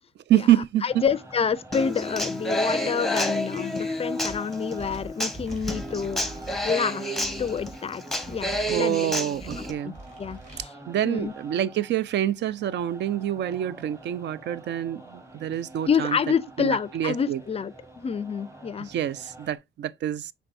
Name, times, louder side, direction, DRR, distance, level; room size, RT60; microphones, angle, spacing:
voice 1, 0.3-0.8 8.7-10.0 10.9-16.2 16.6-17.4 18.8-20.3, right 11 dB, 65° right, 0.4 m, -26 dB
voice 2, 0.8-6.2 6.6-9.0 9.6-9.9 10.2-10.7 11.0-11.3 15.9-18.9, left 6 dB, 30° left, 0.4 m, -28 dB
sound 1, 0.9-19.6, right 1 dB, 15° right, 1.2 m, -47 dB
Human voice / Acoustic guitar, 1.7-9.7, left 1 dB, ahead, 0.8 m, -30 dB
sound 2, 4.3-4.4 4.8-6.7 7.2-7.7 8.2-8.8 9.3-10.6, right 2 dB, 35° right, 2.7 m, -42 dB
5.9 x 3.4 x 2.5 m
cardioid pair, 90°, 20 cm